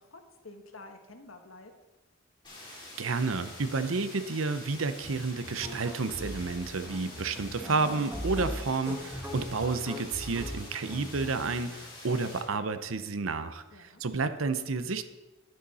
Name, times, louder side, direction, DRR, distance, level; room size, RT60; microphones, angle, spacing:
voice 1, 0.0-1.7 13.7-14.0, left 2 dB, 85° left, 5 dB, 1.4 m, -50 dB
sound 1, 2.4-12.4, left 2 dB, 25° left, 3.9 m, -47 dB
voice 2, 3.0-15.1, right 4 dB, 80° right, 11 dB, 0.7 m, -31 dB
sound 2, 5.4-11.8, equal, 10° right, 1.5 m, -40 dB
11.5 x 9.4 x 4.2 m, 1.1 s
head